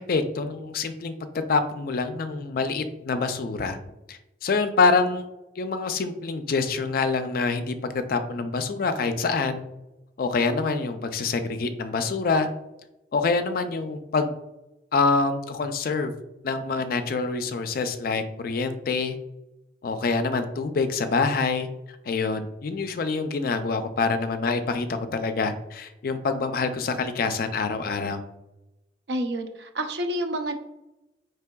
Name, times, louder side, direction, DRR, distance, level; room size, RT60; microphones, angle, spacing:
voice 1, 0.1-1.1 1.5-3.8 4.1-5.2 5.6-9.6 10.2-12.5 13.1-14.3 14.9-16.1 16.4-19.1 19.8-21.7 22.1-28.2, left 4 dB, 55° left, 9 dB, 0.4 m, -26 dB
voice 2, 29.1-30.5, right 1 dB, 65° right, 5 dB, 0.5 m, -29 dB
4.5 x 3.2 x 2.2 m, 0.95 s
head